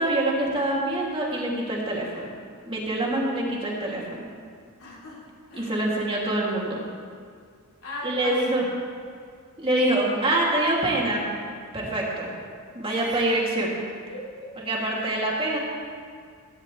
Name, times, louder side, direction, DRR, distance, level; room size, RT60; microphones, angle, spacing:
voice 1, 0.0-2.3 2.7-4.2 5.6-6.8 8.0-8.7 9.6-11.2 11.7-12.3 12.7-13.8 14.6-15.6, right 1 dB, 25° right, -4 dB, 2.9 m, -25 dB
voice 2, 4.8-5.7 7.8-8.6 12.9-13.2 14.1-14.5 14.9-15.2, left 1 dB, 70° left, -5 dB, 3.8 m, -38 dB
17.5 x 15.5 x 3.4 m, 2.1 s
head